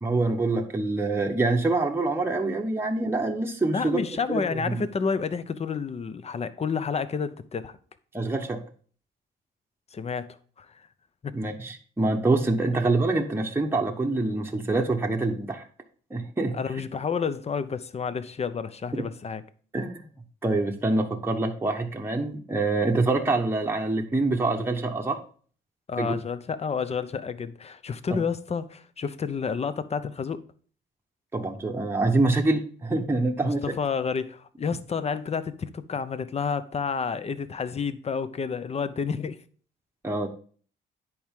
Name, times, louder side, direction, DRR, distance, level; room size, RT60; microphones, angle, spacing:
voice 1, 0.0-4.0 4.3-4.8 8.1-8.6 11.3-15.6 16.1-16.6 19.0-19.1 19.7-20.1 20.4-25.2 26.0-26.1 28.1-28.2 31.3-33.7 40.0-40.3, right 2 dB, 10° right, 1.0 m, -25 dB
voice 2, 3.7-7.8 9.9-10.9 11.2-11.3 16.5-19.4 25.9-30.4 33.4-39.4, left 5 dB, 30° left, 0.7 m, -30 dB
10.0 x 4.7 x 3.6 m
cardioid pair, 90°, 20 cm